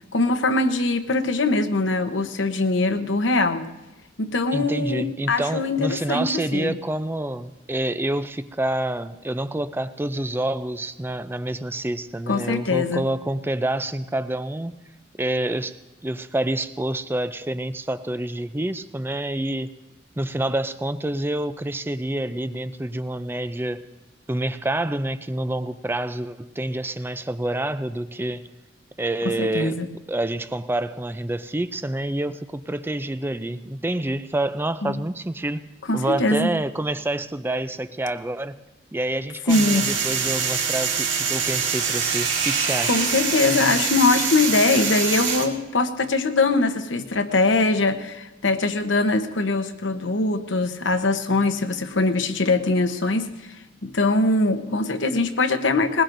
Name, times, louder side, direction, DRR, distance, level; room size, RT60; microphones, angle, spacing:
voice 1, 0.1-3.7 4.2-5.0 5.3-6.8 12.3-13.0 29.4-29.9 34.8-35.0 35.9-36.5 39.5-40.0 42.9-53.3 53.8-56.0, left 3 dB, 80° left, 7 dB, 1.0 m, -22 dB
voice 2, 4.5-14.8 15.2-15.8 16.0-19.7 20.2-23.9 24.3-28.5 29.0-35.6 35.9-38.6 38.9-43.0, right 1 dB, 10° right, 13 dB, 0.4 m, -27 dB
sound 1, 39.5-45.5, right 6 dB, 85° right, 2.0 m, -24 dB
20.5 x 20.0 x 2.6 m, 1.0 s
head